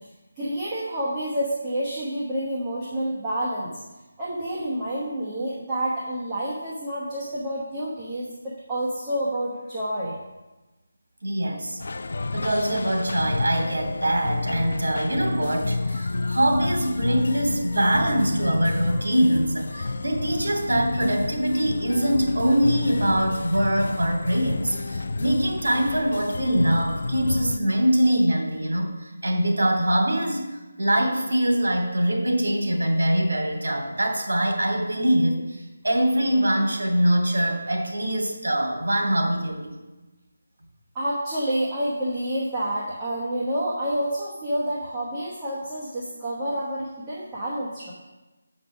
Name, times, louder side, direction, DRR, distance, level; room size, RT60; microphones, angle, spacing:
voice 1, 0.4-3.7 4.2-8.3 8.7-10.2 40.9-47.9, right 1 dB, 10° right, -9 dB, 1.1 m, -28 dB
voice 2, 11.2-11.8 12.3-30.4 30.8-39.7, right 1 dB, 75° right, 1 dB, 3.0 m, -23 dB
sound 1, 11.8-27.6, left 3 dB, 45° left, 0.4 m, -30 dB
7.5 x 5.4 x 7.2 m, 1.1 s
figure-of-eight pair, 180°, 0 cm